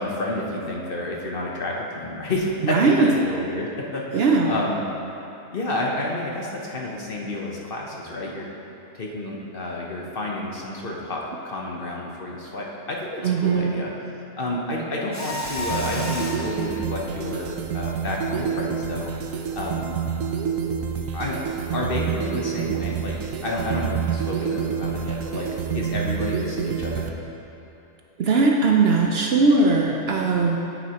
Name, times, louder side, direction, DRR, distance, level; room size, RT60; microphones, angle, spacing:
voice 1, 0.0-4.8 5.5-8.5 8.9-20.0 21.1-21.4 21.7-27.1, left 1 dB, 45° left, -2 dB, 1.0 m, -30 dB
voice 2, 2.6-3.2 4.1-4.6 13.2-13.8 28.2-30.6, right 3 dB, 60° right, 0 dB, 0.8 m, -19 dB
Mechanisms, 15.1-16.6, left 1 dB, 20° left, 0.5 m, -31 dB
sound 1, 15.1-27.1, right 7 dB, 85° right, 1.0 m, -28 dB
9.4 x 9.3 x 2.9 m, 2.9 s
omnidirectional pair, 1.4 m